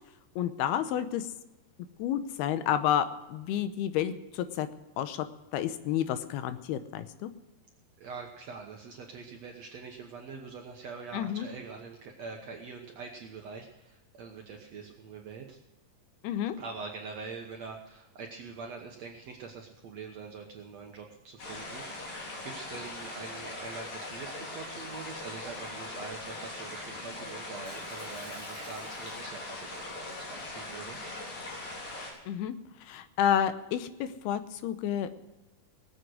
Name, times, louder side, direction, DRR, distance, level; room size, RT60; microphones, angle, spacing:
voice 1, 0.4-1.3 2.0-4.7 5.0-5.3 5.5-7.3 11.1-11.5 16.2-16.6 32.3-32.6 32.8-35.2, left 10 dB, 85° left, 11 dB, 2.8 m, -30 dB
voice 2, 8.0-15.6 16.6-31.4, right 5 dB, 65° right, 1 dB, 1.8 m, -44 dB
sound 1, 21.4-32.1, left 2 dB, 60° left, 5.5 m, -40 dB
Shatter, 27.7-29.5 29.9-30.2, left 1 dB, 20° left, 5.4 m, -53 dB
19.0 x 7.8 x 6.4 m, 1.0 s
omnidirectional pair, 4.5 m